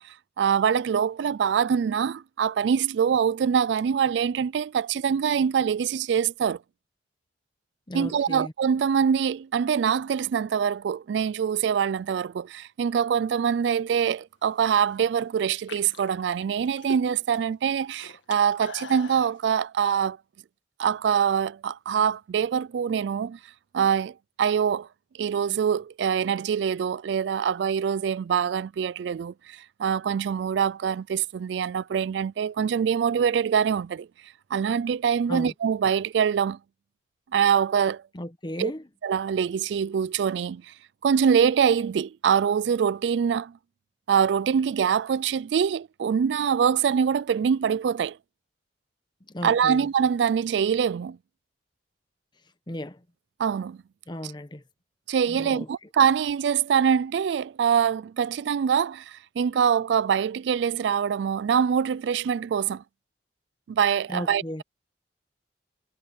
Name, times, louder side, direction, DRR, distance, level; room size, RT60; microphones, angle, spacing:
voice 1, 0.0-6.6 7.9-20.2 20.8-23.4 23.7-24.9 25.2-34.1 34.5-36.6 37.3-38.0 38.6-38.7 39.0-40.7 41.0-43.5 44.1-48.2 49.4-51.2 53.4-53.8 55.1-62.8 63.7-64.6, right 7 dB, 70° right, 0.3 m, -24 dB
voice 2, 7.9-8.5 35.3-35.5 38.1-38.8 49.3-49.9 52.7-53.0 54.1-54.6 55.3-55.7 64.1-64.6, left 1 dB, 25° left, 1.0 m, -35 dB
sound 1, 14.5-15.0 15.5-17.4 17.7-19.3, left 4 dB, 85° left, 1.7 m, -42 dB
head